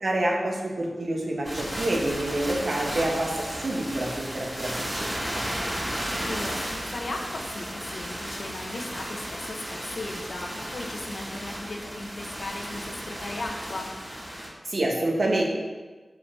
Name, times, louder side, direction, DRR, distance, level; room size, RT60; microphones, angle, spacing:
voice 1, 0.0-5.4 14.7-15.4, right 1 dB, 65° right, -1 dB, 1.5 m, -27 dB
sound 1, 1.4-14.5, equal, 25° right, 2.3 m, -34 dB
voice 2, 6.2-13.9, left 2 dB, 85° left, 1 dB, 1.1 m, -37 dB
5.7 x 5.0 x 6.2 m, 1.3 s
wide cardioid pair, 60°, 0 cm